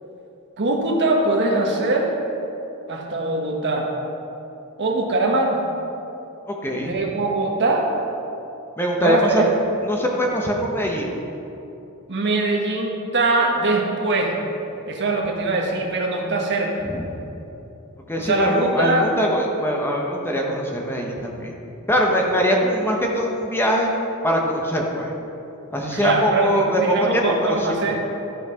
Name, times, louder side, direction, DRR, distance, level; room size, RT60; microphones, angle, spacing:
voice 1, 0.6-2.1 2.9-3.9 4.8-5.6 6.7-7.9 9.0-9.4 12.1-14.3 14.9-16.9 18.2-19.1 25.8-28.0, right 2 dB, 55° right, 0 dB, 1.3 m, -22 dB
voice 2, 6.5-6.9 8.8-9.4 9.8-11.1 16.8-17.1 18.1-21.5 21.9-23.9 24.2-25.1 25.7-27.6, equal, 10° left, -1 dB, 1.0 m, -22 dB
12.5 x 5.8 x 5.6 m, 2.9 s
head